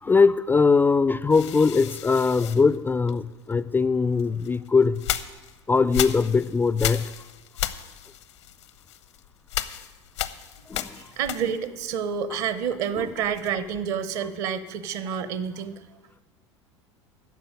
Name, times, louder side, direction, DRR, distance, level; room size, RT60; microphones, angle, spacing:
voice 1, 0.0-5.0 5.7-7.3 10.7-11.1 13.0-13.1, left 4 dB, 15° left, 15 dB, 0.3 m, -21 dB
sound 1, 1.3-3.5 4.2-11.8 12.1-13.7, left 12 dB, 70° left, 0.7 m, -34 dB
voice 2, 10.9-15.8, right 7 dB, 55° right, 13 dB, 0.9 m, -29 dB
10.5 x 7.1 x 8.8 m, 1.2 s
figure-of-eight pair, 80°, 15 cm